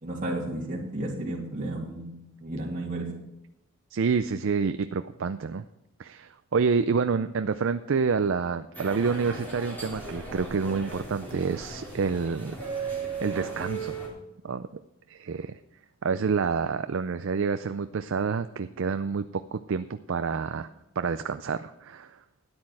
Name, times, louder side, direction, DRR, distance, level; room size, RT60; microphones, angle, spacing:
voice 1, 0.0-2.1 2.4-3.1, right 1 dB, 40° right, -4 dB, 2.6 m, -32 dB
voice 2, 3.9-5.7 6.0-12.5 13.2-14.0 14.4-14.7 15.1-15.6 16.0-20.7 21.0-22.2, right 5 dB, 60° right, 10 dB, 0.4 m, -28 dB
sound 1, 8.7-14.1, right 4 dB, 10° left, 3.3 m, -36 dB
13.0 x 9.7 x 4.7 m, 0.88 s
head